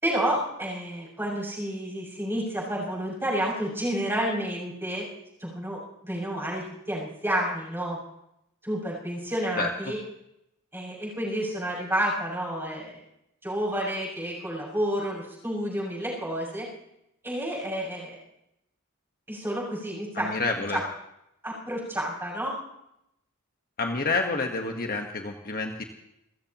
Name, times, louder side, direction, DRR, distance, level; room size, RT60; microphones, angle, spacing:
voice 1, 0.0-5.1 5.4-5.8 6.0-8.0 8.6-10.0 10.7-13.0 13.4-16.7 17.2-18.2 19.3-20.3 20.7-20.8 21.4-22.5, right 1 dB, 10° right, -5 dB, 6.7 m, -30 dB
voice 2, 20.1-20.8 23.8-25.8, left 3 dB, 45° left, 3 dB, 1.3 m, -28 dB
29.5 x 14.5 x 3.0 m, 0.81 s
head